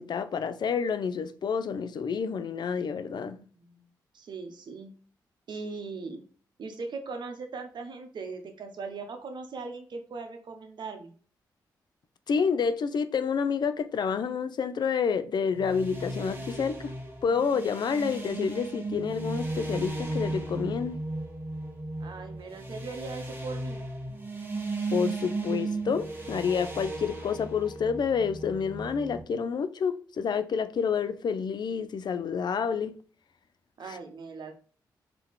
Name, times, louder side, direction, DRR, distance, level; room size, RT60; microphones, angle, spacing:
voice 1, 0.0-3.4 12.3-16.9 17.2-21.0 24.9-33.0 33.8-34.0, left 6 dB, 65° left, 0.4 m, -29 dB
voice 2, 3.4-3.8 4.1-4.9 5.5-6.2 6.6-11.1 22.0-23.8 33.8-34.5, right 4 dB, 65° right, 0.9 m, -39 dB
sound 1, 15.5-29.2, right 2 dB, 25° right, 1.3 m, -35 dB
3.7 x 2.9 x 3.5 m
cardioid pair, 55°, 8 cm